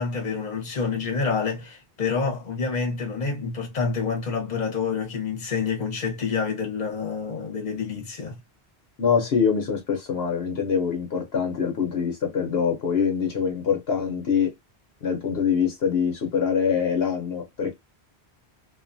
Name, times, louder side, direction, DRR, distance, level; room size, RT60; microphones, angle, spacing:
voice 1, 0.0-8.4, left 5 dB, 45° left, 1.0 m, -28 dB
voice 2, 9.0-14.5 15.0-17.7, left 6 dB, 70° left, 1.0 m, -24 dB
2.5 x 2.3 x 2.5 m
omnidirectional pair, 1.1 m